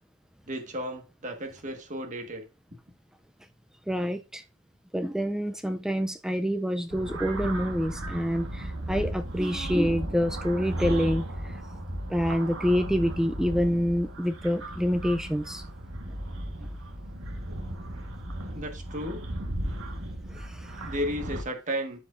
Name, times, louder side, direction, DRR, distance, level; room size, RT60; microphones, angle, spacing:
voice 1, 0.5-2.5 18.5-19.3 20.8-22.0, equal, 40° right, 1.5 m, -34 dB
voice 2, 3.9-4.4 4.9-11.6 12.1-15.6 20.3-20.8, equal, 5° right, 0.3 m, -27 dB
sound 1, 6.9-21.4, right 1 dB, 85° right, 1.4 m, -35 dB
12.0 x 4.7 x 2.5 m
head